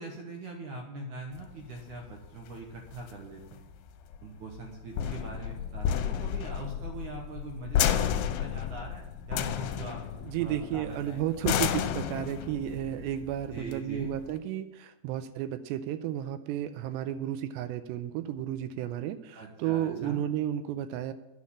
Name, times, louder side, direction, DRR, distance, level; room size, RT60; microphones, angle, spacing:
voice 1, 0.0-3.7 4.2-10.1 10.4-11.2 13.5-14.1 19.3-20.2, right 2 dB, 65° right, 1 dB, 2.0 m, -42 dB
sound 1, 1.4-14.4, left 9 dB, 85° left, 2.7 m, -32 dB
voice 2, 10.2-21.1, right 11 dB, 85° right, 12 dB, 2.8 m, -33 dB
9.6 x 6.5 x 8.5 m, 0.99 s
omnidirectional pair, 5.0 m